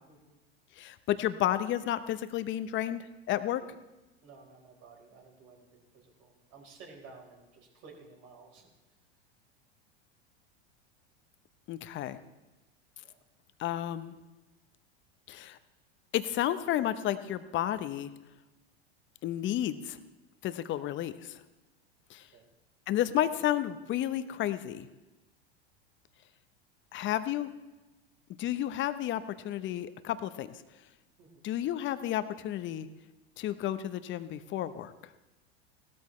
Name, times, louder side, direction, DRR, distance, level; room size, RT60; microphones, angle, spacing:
voice 1, 0.1-0.4 3.6-3.7 4.2-8.7 13.0-13.2 22.3-22.5 31.2-31.4, right 4 dB, 50° right, 0 dB, 4.3 m, -54 dB
voice 2, 0.8-3.6 11.7-12.2 13.6-14.2 15.3-15.6 16.1-18.1 19.2-20.0 20.4-21.4 22.1-22.2 22.9-24.9 26.9-27.5 28.4-30.5 31.4-32.9 33.4-34.9, left 12 dB, 35° left, 12 dB, 0.9 m, -31 dB
17.0 x 13.0 x 3.2 m, 1.1 s
hypercardioid pair, 100°, 32 cm